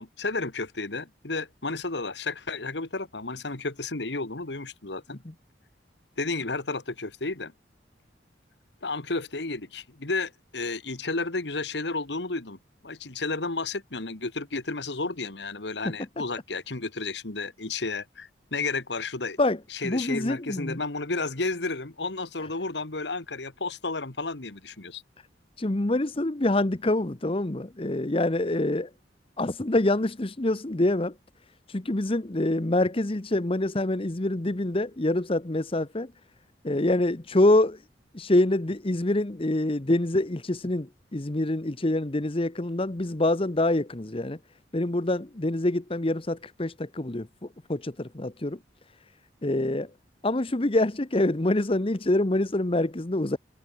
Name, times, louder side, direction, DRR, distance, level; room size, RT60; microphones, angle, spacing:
voice 1, 0.0-5.2 6.2-7.5 8.8-12.6 12.8-19.4 19.7-25.0, left 3 dB, 70° left, 1.9 m, -32 dB
voice 2, 19.4-20.8 25.6-28.9 29.4-31.1 31.7-36.1 36.6-37.8 38.1-44.4 44.7-48.6 49.4-49.9 50.2-53.4, left 1 dB, 30° left, 1.0 m, -26 dB
head